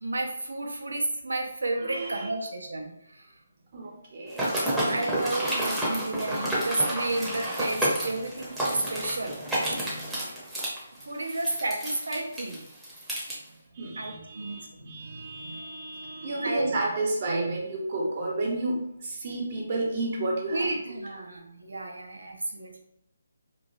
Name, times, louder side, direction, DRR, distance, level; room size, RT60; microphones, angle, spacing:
voice 1, 0.0-3.3 4.9-9.4 11.0-12.7 14.0-14.7 16.4-16.8 20.5-22.8, right 2 dB, 85° right, 2 dB, 0.6 m, -32 dB
voice 2, 1.8-2.3 3.7-4.5 13.7-21.0, right 2 dB, 40° right, -1 dB, 0.6 m, -31 dB
sound 1, 4.3-13.3, right 1 dB, 5° right, 0.7 m, -30 dB
3.0 x 2.1 x 2.5 m, 0.77 s
figure-of-eight pair, 155°, 0 cm